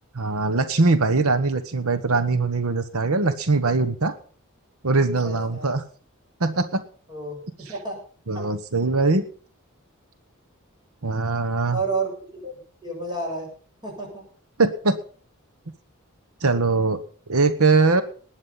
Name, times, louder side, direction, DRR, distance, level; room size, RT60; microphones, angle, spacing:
voice 1, 0.1-4.2 4.8-5.8 6.4-6.8 8.3-9.2 11.0-11.8 14.6-15.0 16.4-17.0 17.3-18.0, right 3 dB, 90° right, 11 dB, 1.2 m, -21 dB
voice 2, 5.2-5.7 7.1-7.4 7.7-8.0 11.7-12.5 12.8-13.5 13.8-14.2, right 3 dB, 20° right, -1 dB, 7.2 m, -30 dB
19.5 x 8.9 x 5.6 m, 0.43 s
head